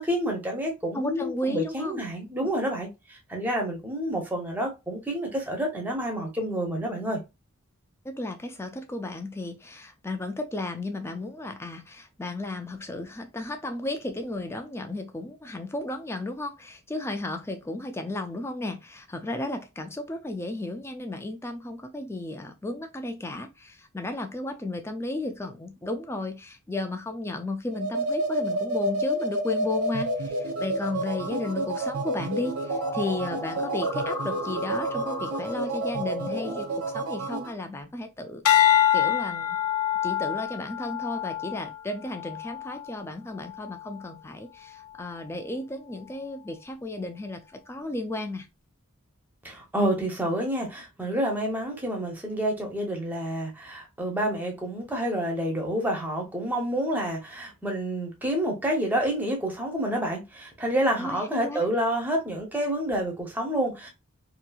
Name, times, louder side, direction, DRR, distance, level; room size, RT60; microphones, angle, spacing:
voice 1, 0.0-7.2 49.4-63.9, right 1 dB, 10° right, 0.7 m, -28 dB
voice 2, 0.9-2.0 2.4-2.5 8.0-36.7 36.9-38.4 38.9-39.6 40.0-48.5 61.0-61.7, left 2 dB, 10° left, 0.3 m, -34 dB
sound 1, 27.7-37.5, right 1 dB, 85° right, 0.5 m, -30 dB
sound 2, 32.7-36.6, left 2 dB, 30° left, 0.9 m, -35 dB
sound 3, 38.4-42.9 43.5-43.9, left 11 dB, 80° left, 0.4 m, -25 dB
2.8 x 2.6 x 2.3 m
head